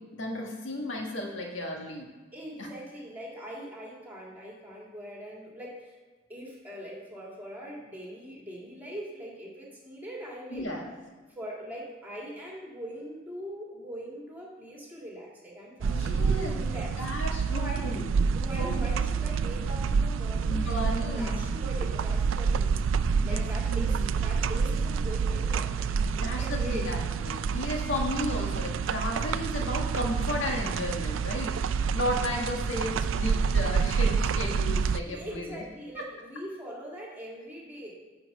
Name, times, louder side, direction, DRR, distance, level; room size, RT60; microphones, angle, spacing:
voice 1, 0.1-2.1 2.6-2.7 10.5-10.8 15.9-16.6 17.0-18.1 18.6-18.9 20.5-21.5 23.1-23.4 23.7-24.2 26.1-31.6 31.9-35.6 35.9-36.0, left 1 dB, 85° left, 1 dB, 1.5 m, -34 dB
voice 2, 2.3-6.0 6.3-10.7 11.3-17.0 17.5-17.9 18.3-22.7 23.2-26.9 35.0-38.0, equal, 10° right, -3 dB, 2.3 m, -41 dB
sound 1, 15.8-35.0, right 5 dB, 85° right, 0.4 m, -28 dB
9.8 x 4.4 x 6.6 m, 1.3 s
head